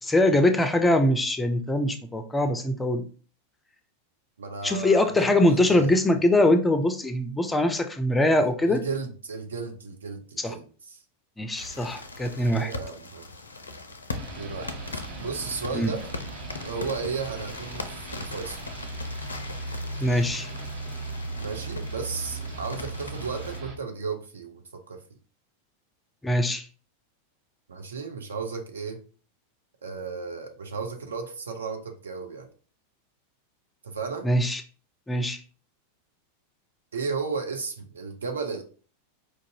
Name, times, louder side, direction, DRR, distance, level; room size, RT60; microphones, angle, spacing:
voice 1, 0.0-3.0 4.6-8.8 10.4-10.6 11.4-12.7 15.7-15.9 20.0-20.5 26.2-26.7 34.2-34.6 35.1-35.4, left 1 dB, 10° left, 8 dB, 0.4 m, -22 dB
voice 2, 4.4-6.0 8.7-11.0 12.2-13.2 14.2-14.8 15.2-16.1 16.6-17.9 18.2-18.6 21.4-25.0 27.7-29.0 29.8-32.5 33.8-34.3 36.9-38.6, right 5 dB, 70° right, 4 dB, 0.6 m, -34 dB
sound 1, 11.6-23.6, left 3 dB, 75° left, 0.4 m, -40 dB
sound 2, 14.1-23.7, right 2 dB, 55° right, 1.1 m, -37 dB
4.5 x 2.5 x 2.7 m, 0.39 s
figure-of-eight pair, 90°, 0 cm